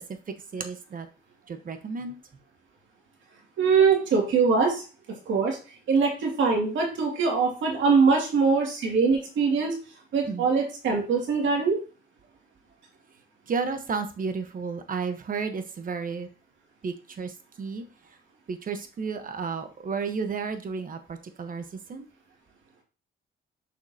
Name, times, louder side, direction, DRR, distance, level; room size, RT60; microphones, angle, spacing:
voice 1, 0.5-1.1 1.5-2.1 10.3-10.5 13.5-16.3 16.8-17.3 17.6-17.8 18.5-22.1, right 5 dB, 45° right, 8 dB, 1.2 m, -32 dB
voice 2, 3.6-5.6 5.9-9.7 10.1-11.8, right 5 dB, 70° right, 0 dB, 2.4 m, -23 dB
6.5 x 5.8 x 2.9 m, 0.35 s
cardioid pair, 90°, 20 cm